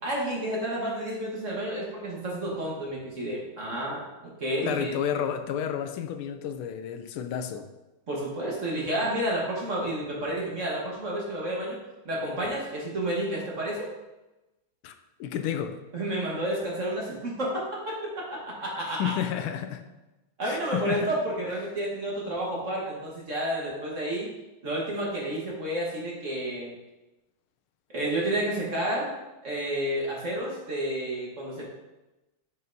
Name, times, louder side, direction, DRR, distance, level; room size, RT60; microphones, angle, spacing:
voice 1, 0.0-4.0 4.4-4.9 8.1-11.8 12.0-13.9 15.9-19.1 20.4-24.3 24.6-26.7 27.9-29.1 29.4-31.6, right 1 dB, 40° right, -4 dB, 1.4 m, -30 dB
voice 2, 4.6-7.6 14.8-14.9 15.2-15.8 18.9-19.8 20.4-21.1, left 9 dB, 90° left, 8 dB, 1.5 m, -31 dB
7.6 x 5.5 x 2.7 m, 1.0 s
omnidirectional pair, 2.3 m